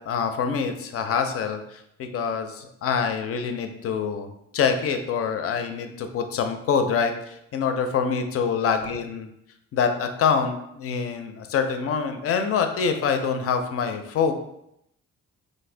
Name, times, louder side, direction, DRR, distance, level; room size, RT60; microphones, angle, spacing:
voice 1, 0.0-9.3 9.7-14.3, left 6 dB, 50° left, 7 dB, 0.4 m, -25 dB
2.5 x 2.1 x 3.3 m, 0.79 s
cardioid pair, 90°, 30 cm